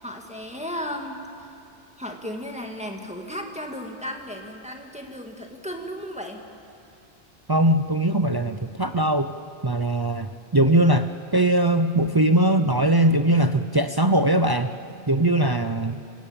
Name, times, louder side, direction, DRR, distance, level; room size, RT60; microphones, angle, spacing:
voice 1, 0.0-1.6 2.0-6.5, equal, 5° right, 2 dB, 1.9 m, -35 dB
voice 2, 7.5-9.3 9.6-14.7 15.1-16.0, right 1 dB, 30° right, 9 dB, 0.5 m, -21 dB
27.0 x 16.5 x 8.8 m, 2.6 s
omnidirectional pair, 1.1 m